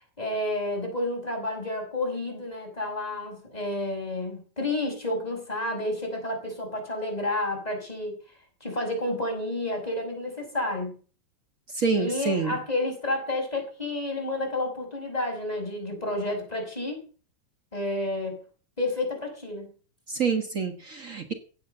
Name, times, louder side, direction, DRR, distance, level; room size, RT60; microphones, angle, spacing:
voice 1, 0.2-8.2 8.6-10.9 11.9-17.0 17.7-18.4 18.8-19.7, left 1 dB, 10° left, 2 dB, 5.7 m, -30 dB
voice 2, 11.7-12.6 20.1-21.3, right 5 dB, 80° right, 6 dB, 0.7 m, -27 dB
16.0 x 9.7 x 6.7 m, 0.39 s
omnidirectional pair, 4.0 m